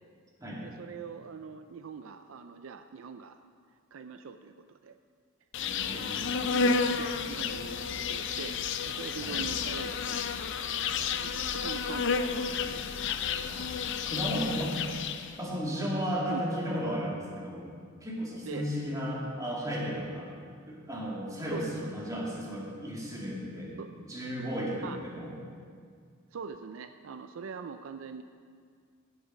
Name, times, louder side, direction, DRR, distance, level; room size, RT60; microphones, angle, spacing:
voice 1, 0.5-3.4 3.9-5.0 5.9-8.6 8.8-10.3 11.0-13.3 16.3-16.4 18.5-18.7 21.5-21.9 23.8-23.9 24.8-25.0 26.3-28.2, right 5 dB, 70° right, 8 dB, 0.4 m, -43 dB
Insect, 5.5-15.4, left 5 dB, 60° left, 0.5 m, -31 dB
voice 2, 5.6-6.3 9.2-9.4 13.5-14.8 15.4-17.7 18.0-20.3 20.6-23.7 24.0-25.3, equal, 15° right, -4 dB, 2.4 m, -34 dB
15.0 x 7.2 x 5.2 m, 2.1 s
head